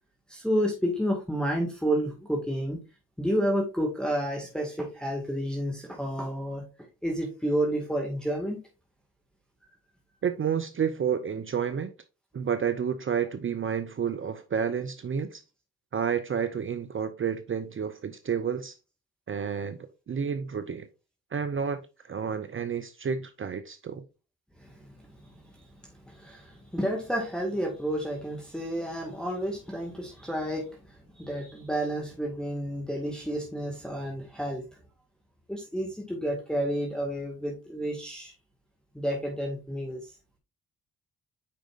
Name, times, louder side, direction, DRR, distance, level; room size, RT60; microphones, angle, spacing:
voice 1, 0.3-2.8 3.2-6.6 7.0-8.6 24.6-25.6 26.0-34.6 35.5-38.3 38.9-40.1, equal, ahead, 1.9 m, -30 dB
voice 2, 10.2-11.9 12.3-15.4 15.9-18.8 19.3-19.8 20.1-20.9 21.3-24.0, right 7 dB, 35° right, 0.7 m, -30 dB
8.4 x 5.0 x 2.5 m
hypercardioid pair, 45°, 36 cm